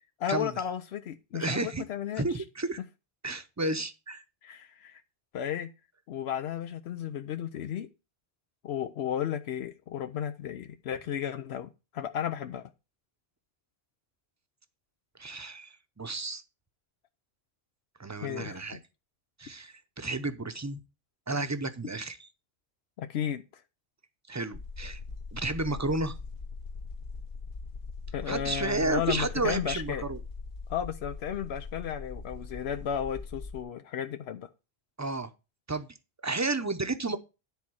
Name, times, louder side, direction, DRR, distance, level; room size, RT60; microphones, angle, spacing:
voice 1, 0.2-2.4 4.4-5.0 5.3-5.7 6.1-7.9 8.6-12.7 18.2-18.8 23.0-23.4 28.1-30.0 30.7-34.5, left 9 dB, 85° left, 0.9 m, -34 dB
voice 2, 1.3-1.8 2.2-2.8 3.2-4.2 15.2-16.4 18.0-18.8 19.4-20.8 21.3-22.3 24.3-25.0 25.3-26.2 28.3-30.2 35.0-35.3 35.7-35.9 36.2-37.2, right 2 dB, 20° right, 0.6 m, -32 dB
sound 1, 24.5-33.6, left 4 dB, 55° left, 1.1 m, -41 dB
10.5 x 4.2 x 6.2 m
omnidirectional pair, 1.1 m